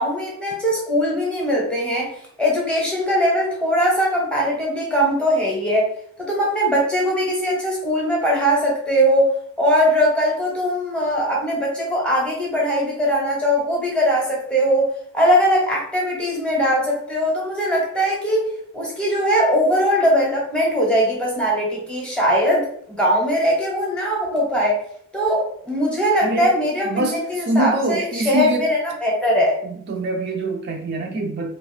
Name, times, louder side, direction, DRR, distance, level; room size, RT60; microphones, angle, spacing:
voice 1, 0.0-2.1 2.4-5.9 6.2-18.5 18.7-24.8 25.1-29.6, equal, 5° left, -3 dB, 0.7 m, -20 dB
voice 2, 26.2-28.7 29.6-31.6, right 1 dB, 45° right, 3 dB, 0.3 m, -25 dB
2.4 x 2.3 x 3.1 m, 0.66 s
head